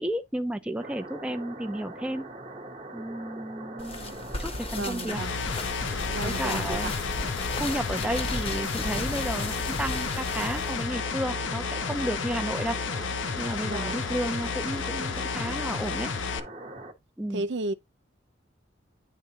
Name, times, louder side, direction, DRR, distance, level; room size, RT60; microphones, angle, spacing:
voice 1, 0.0-2.3 2.9-4.0 4.4-5.2 6.2-6.9 7.6-12.8 13.4-16.1 17.2-17.4, right 1 dB, 5° right, 0.4 m, -32 dB
sound 1, 0.8-16.9, right 2 dB, 35° right, 1.0 m, -41 dB
voice 2, 3.7-4.3 4.8-5.4 6.1-6.9 13.6-14.0 17.3-17.7, right 2 dB, 65° right, 0.5 m, -34 dB
sound 2, 3.8-10.9, left 2 dB, 30° left, 0.8 m, -35 dB
sound 3, 5.1-16.4, left 5 dB, 90° left, 0.7 m, -32 dB
9.9 x 3.3 x 2.8 m
head